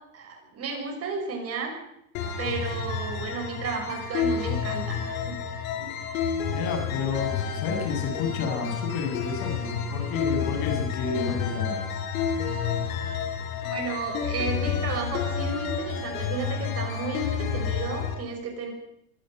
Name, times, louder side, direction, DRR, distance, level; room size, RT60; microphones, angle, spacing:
voice 1, 0.1-1.8 2.4-5.4 5.8-5.9 13.6-18.7, right 5 dB, 35° right, 2 dB, 7.1 m, -33 dB
sound 1, 2.1-18.1, left 7 dB, 65° left, 6.7 m, -30 dB
voice 2, 6.5-11.8, left 5 dB, 50° left, 5 dB, 7.8 m, -31 dB
24.0 x 15.5 x 8.1 m, 0.78 s
hypercardioid pair, 115°, 44 cm